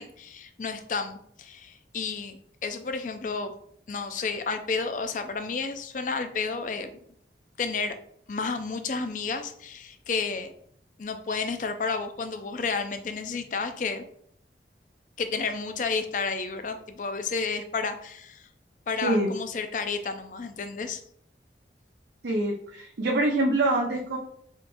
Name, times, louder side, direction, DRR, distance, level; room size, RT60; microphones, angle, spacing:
voice 1, 0.0-3.5 3.9-6.9 7.6-8.0 8.3-10.5 11.0-14.0 15.2-18.5 18.9-21.0, left 4 dB, 45° left, 8 dB, 0.4 m, -31 dB
voice 2, 22.2-24.2, right 1 dB, 80° right, -1 dB, 0.6 m, -25 dB
4.3 x 3.7 x 2.6 m, 0.66 s
head